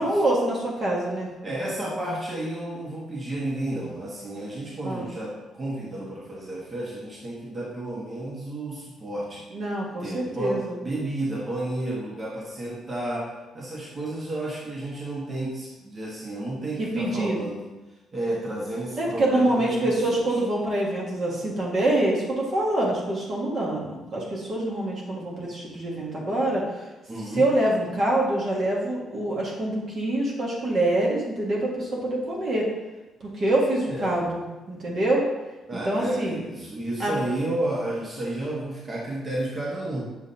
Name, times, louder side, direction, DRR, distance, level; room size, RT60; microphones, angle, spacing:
voice 1, 0.0-1.3 4.8-5.1 9.5-10.7 16.8-17.4 19.0-26.6 27.3-32.7 33.3-35.2 35.8-36.4 37.0-37.1, right 1 dB, 55° right, -4 dB, 1.7 m, -25 dB
voice 2, 1.4-9.4 10.0-13.3 13.5-17.7 18.1-20.4 27.1-27.4 33.9-34.2 35.7-40.0, right 1 dB, 35° right, -5 dB, 1.5 m, -31 dB
7.0 x 5.1 x 2.8 m, 1.1 s
cardioid pair, 90°, 0 cm